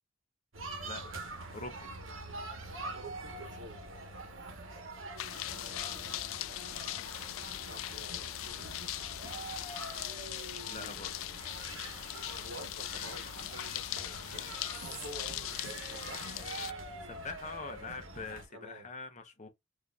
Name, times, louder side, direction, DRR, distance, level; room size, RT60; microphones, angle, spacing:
sound 1, 0.5-18.4, right 2 dB, 85° right, 1.2 m, -45 dB
voice 1, 1.5-1.9 10.7-11.1 17.0-19.5, left 4 dB, 40° left, 0.9 m, -43 dB
voice 2, 2.9-3.8 5.5-6.2 7.7-8.9 12.4-16.3 18.5-18.9, right 2 dB, 65° right, 1.1 m, -49 dB
sound 2, 5.2-16.7, left 15 dB, 85° left, 0.3 m, -40 dB
6.4 x 2.7 x 2.3 m
head